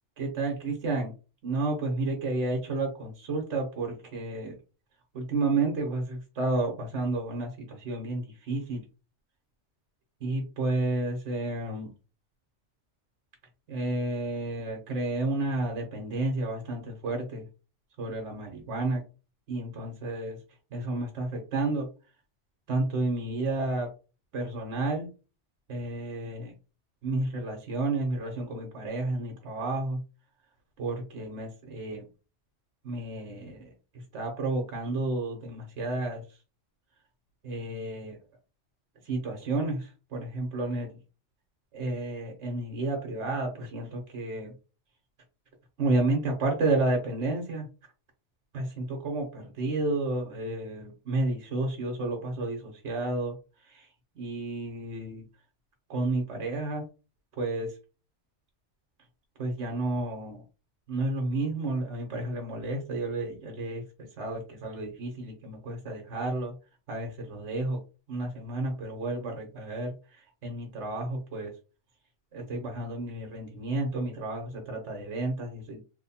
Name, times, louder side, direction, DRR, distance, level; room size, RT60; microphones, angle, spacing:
voice 1, 0.2-1.1 1.4-4.6 5.1-8.8 10.2-11.9 13.7-17.5 18.0-19.0 19.5-20.4 20.7-21.9 22.7-23.9 24.3-25.1 25.7-26.5 27.0-30.0 30.8-32.1 32.8-36.2 37.4-38.2 39.0-40.9 41.7-44.5 45.8-47.7 48.5-53.3 53.6-55.2 55.9-56.9 57.4-57.8 59.4-60.4 60.9-63.8 64.2-66.5 66.9-67.8 68.1-71.5 72.3-75.8, right 2 dB, 75° right, 2 dB, 1.2 m, -31 dB
3.1 x 2.2 x 4.1 m, 0.33 s
omnidirectional pair, 1.2 m